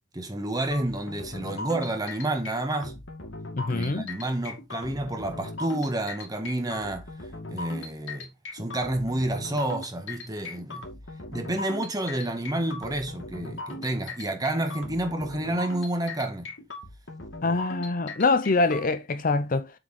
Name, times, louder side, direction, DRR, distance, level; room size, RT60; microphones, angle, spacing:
voice 1, 0.1-3.0 3.7-7.1 7.5-10.8 11.3-16.5, right 1 dB, 20° right, 1.6 m, -29 dB
sound 1, 0.7-18.8, left 2 dB, 75° left, 2.6 m, -39 dB
voice 2, 3.6-4.1 17.4-19.7, left 3 dB, 45° left, 0.7 m, -24 dB
7.7 x 4.8 x 4.2 m
head